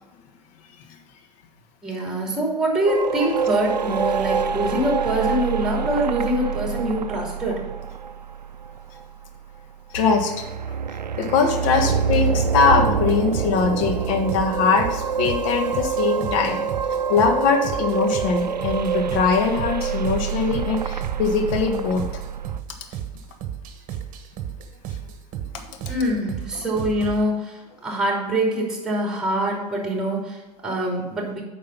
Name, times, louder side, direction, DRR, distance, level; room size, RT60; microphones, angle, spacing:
voice 1, 1.8-7.6 25.9-31.4, right 1 dB, 5° right, -1 dB, 3.1 m, -24 dB
sound 1, 2.9-9.6 9.9-22.6, right 6 dB, 90° right, 0.4 m, -26 dB
voice 2, 9.9-10.4 11.2-16.6 17.1-22.0, left 5 dB, 55° left, 5 dB, 1.5 m, -21 dB
sound 2, 11.9-27.2, right 9 dB, 40° right, 1.2 m, -34 dB
8.9 x 5.4 x 5.8 m, 1.1 s
figure-of-eight pair, 85°, 21 cm